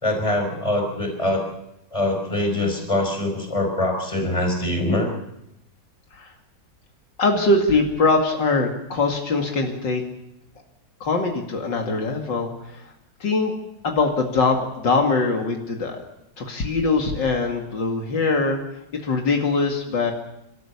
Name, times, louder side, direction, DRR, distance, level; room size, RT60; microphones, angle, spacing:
voice 1, 0.0-1.5 1.9-5.1, left 1 dB, 15° left, 3 dB, 5.1 m, -23 dB
voice 2, 7.2-10.0 11.0-12.9 13.2-13.6 13.8-16.0 16.4-18.6 18.9-20.1, left 3 dB, 80° left, 2 dB, 3.0 m, -22 dB
29.0 x 13.0 x 8.5 m, 0.83 s
omnidirectional pair, 1.9 m